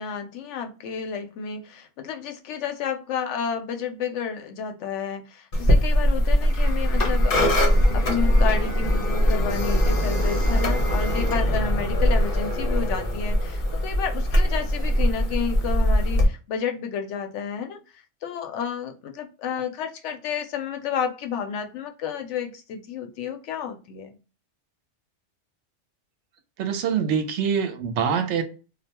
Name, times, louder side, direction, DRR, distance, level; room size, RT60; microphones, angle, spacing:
voice 1, 0.0-17.8 18.2-24.2, left 7 dB, 85° left, 0.9 m, -31 dB
sound 1, 5.5-16.2, equal, 55° left, 0.9 m, -21 dB
voice 2, 26.6-28.4, right 7 dB, 80° right, 0.9 m, -24 dB
2.3 x 2.2 x 2.8 m
omnidirectional pair, 1.2 m